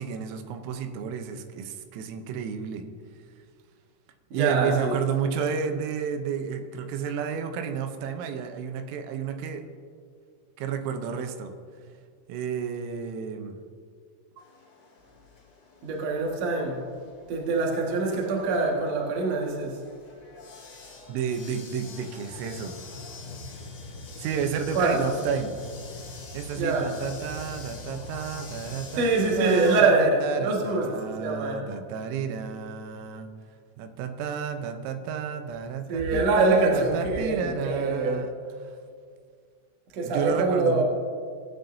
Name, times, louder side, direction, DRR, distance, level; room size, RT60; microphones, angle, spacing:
voice 1, 0.0-2.9 4.3-9.7 10.6-11.5 12.3-13.6 21.1-22.8 24.2-25.6 26.3-33.3 33.8-38.3 38.6-38.7 40.0-40.8, right 7 dB, 90° right, 7 dB, 3.4 m, -31 dB
voice 2, 4.3-5.0 15.8-16.8 17.3-19.8 24.7-25.0 26.6-26.9 29.0-30.9 31.2-31.6 35.9-38.2 39.9-40.8, right 3 dB, 70° right, -1 dB, 1.5 m, -24 dB
sound 1, 14.4-29.8, left 4 dB, 50° left, 2.7 m, -48 dB
sound 2, 22.2-29.4, left 2 dB, 70° left, 2.3 m, -43 dB
18.0 x 9.1 x 2.7 m, 2.1 s
omnidirectional pair, 5.7 m